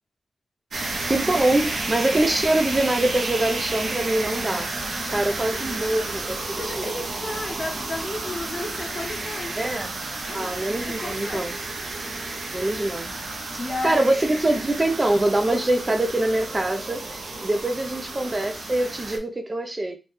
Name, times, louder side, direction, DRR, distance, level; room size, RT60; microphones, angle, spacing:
sound 1, 0.7-19.2, right 2 dB, 85° right, 0.7 m, -31 dB
voice 1, 1.1-4.7 5.1-6.9 9.6-9.9 10.3-11.6 12.5-13.1 13.8-20.0, right 1 dB, 30° right, 0.4 m, -24 dB
voice 2, 6.6-9.6 10.3-10.6 10.9-11.5 13.6-14.1, left 2 dB, 40° left, 1.1 m, -33 dB
4.1 x 2.2 x 3.2 m
wide cardioid pair, 95°, 0 cm